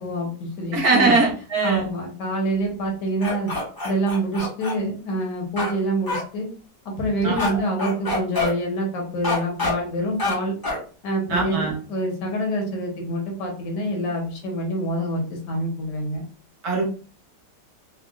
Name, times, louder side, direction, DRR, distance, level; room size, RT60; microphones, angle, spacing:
voice 1, 0.0-1.1 1.6-3.5 3.8-6.5 6.8-10.6 11.0-16.2, right 1 dB, 75° left, 1 dB, 1.4 m, -26 dB
voice 2, 0.7-1.9 7.2-7.6 11.3-11.7 16.6-16.8, right 3 dB, 65° right, -1 dB, 1.3 m, -21 dB
sound 1, 3.2-4.7 5.6-5.7 6.1-6.2 7.4-7.5 7.8-8.5 9.2-9.7 10.2-10.3 10.6-10.8, left 2 dB, 35° left, 0.3 m, -26 dB
3.5 x 2.1 x 2.3 m, 0.39 s
omnidirectional pair, 1.9 m